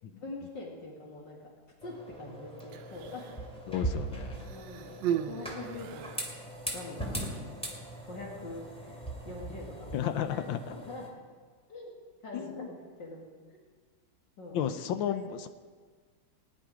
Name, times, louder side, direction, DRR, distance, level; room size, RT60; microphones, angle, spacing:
voice 1, 0.2-1.4 1.8-3.3 3.7-3.8 4.5-7.2 8.1-10.0 10.3-11.1 11.7-11.9 12.2-13.3 14.4-14.6 15.1-15.2, left 2 dB, 65° left, -2 dB, 2.5 m, -44 dB
sound 1, 1.8-11.1, right 1 dB, 5° left, 2.2 m, -40 dB
Human voice, 2.6-3.5 4.4-6.3 7.2-7.4, right 10 dB, 75° right, 1.3 m, -36 dB
voice 2, 3.7-4.5 9.9-10.8 12.3-12.7 14.5-15.5, left 9 dB, 85° left, 9 dB, 1.5 m, -33 dB
18.0 x 10.0 x 4.9 m, 1.5 s
omnidirectional pair, 2.1 m